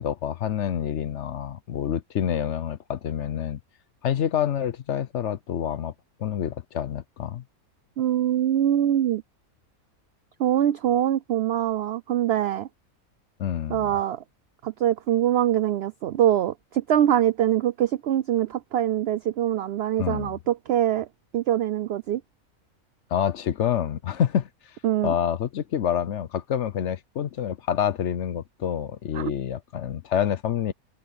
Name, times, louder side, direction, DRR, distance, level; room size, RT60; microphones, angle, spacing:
voice 1, 0.0-3.6 4.0-5.9 6.2-7.4 13.4-13.9 20.0-20.3 23.1-24.5 25.0-30.7, left 9 dB, 60° left, 0.9 m, -27 dB
voice 2, 8.0-9.2 10.4-12.7 13.7-14.2 14.6-21.1 21.3-22.2 24.8-25.1 29.1-29.3, right 11 dB, 65° right, 0.6 m, -23 dB
omnidirectional pair, 1.5 m